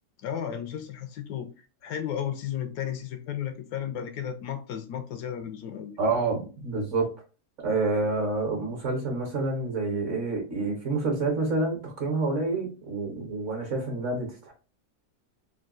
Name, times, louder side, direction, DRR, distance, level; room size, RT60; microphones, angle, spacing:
voice 1, 0.2-1.5 1.8-5.9, left 9 dB, 75° left, 1.1 m, -34 dB
voice 2, 6.0-7.1 7.6-14.5, right 3 dB, 50° right, 1.2 m, -28 dB
3.7 x 2.3 x 2.3 m
omnidirectional pair, 1.8 m